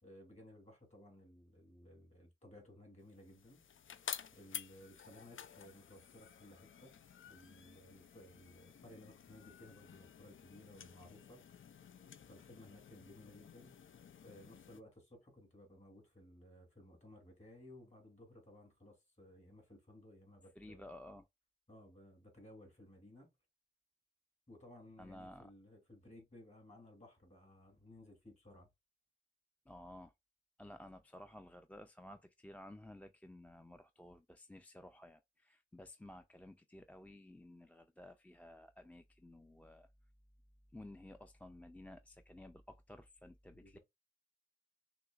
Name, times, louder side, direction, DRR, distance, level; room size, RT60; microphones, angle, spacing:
voice 1, 0.0-3.6 4.3-6.9 7.3-11.4 12.2-13.8 14.2-20.9 21.7-23.3 24.5-28.7 43.5-43.8, left 1 dB, 35° left, 2.7 m, -58 dB
sound 1, 3.1-14.8, left 8 dB, 90° left, 0.4 m, -52 dB
voice 2, 20.6-21.3 25.0-25.5 29.7-30.1 30.6-39.9 40.7-43.8, left 1 dB, 5° left, 0.4 m, -54 dB
5.9 x 3.0 x 2.4 m
wide cardioid pair, 80°, 20 cm